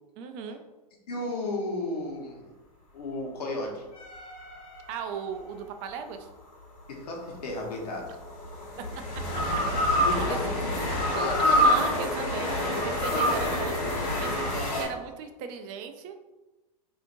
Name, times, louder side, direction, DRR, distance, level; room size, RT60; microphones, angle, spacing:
voice 1, 0.2-0.6 4.9-6.3 9.3-9.4 9.7-10.4 11.4-12.5 12.8-13.8 14.1-16.2, right 6 dB, 40° right, 7 dB, 0.4 m, -37 dB
voice 2, 1.1-2.5 2.9-3.8 6.9-8.2 10.0-10.8 11.1-11.7 13.4-13.5, left 2 dB, 80° left, 0 dB, 1.0 m, -34 dB
sound 1, 3.9-5.4 7.3-14.8, equal, 45° left, 1.4 m, -27 dB
4.2 x 2.7 x 2.5 m, 1.1 s
hypercardioid pair, 110°, 20 cm